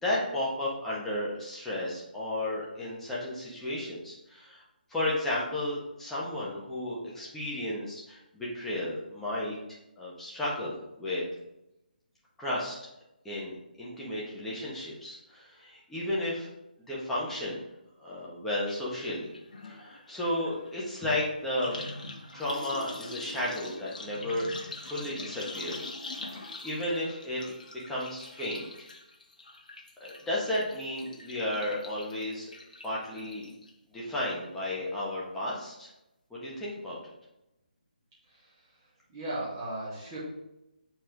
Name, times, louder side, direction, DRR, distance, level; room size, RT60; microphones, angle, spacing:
voice 1, 0.0-4.6 4.9-9.6 10.0-11.2 12.4-12.8 13.2-16.5 16.9-17.6 18.0-19.3 19.6-21.8 22.3-25.9 26.3-27.4 27.7-28.9 30.0-32.5 32.8-33.5 33.9-35.9 36.3-37.1, left 1 dB, 5° left, -7 dB, 1.5 m, -33 dB
sound 1, 18.7-18.8 19.1-33.7 34.1-34.6 34.8-34.9, left 2 dB, 55° left, 1.3 m, -44 dB
voice 2, 38.2-40.2, right 1 dB, 25° right, -8 dB, 2.6 m, -38 dB
7.6 x 4.4 x 3.6 m, 0.90 s
figure-of-eight pair, 145°, 5 cm